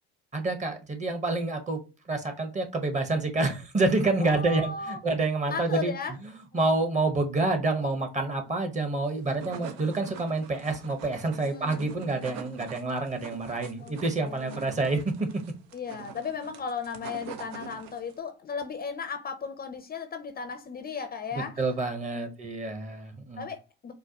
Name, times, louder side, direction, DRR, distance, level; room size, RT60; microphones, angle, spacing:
voice 1, 0.3-1.8 2.1-5.9 6.2-15.3 21.3-23.5, right 3 dB, 25° right, 1.2 m, -28 dB
voice 2, 4.2-5.0 5.5-6.1 6.5-6.7 11.4-11.8 13.8-14.8 15.7-21.6 22.1-22.3 23.4-23.9, left 5 dB, 30° left, 0.6 m, -36 dB
sound 1, 9.1-18.2, right 7 dB, 65° right, 0.8 m, -45 dB
4.5 x 2.1 x 2.9 m
supercardioid pair, 80°, 29 cm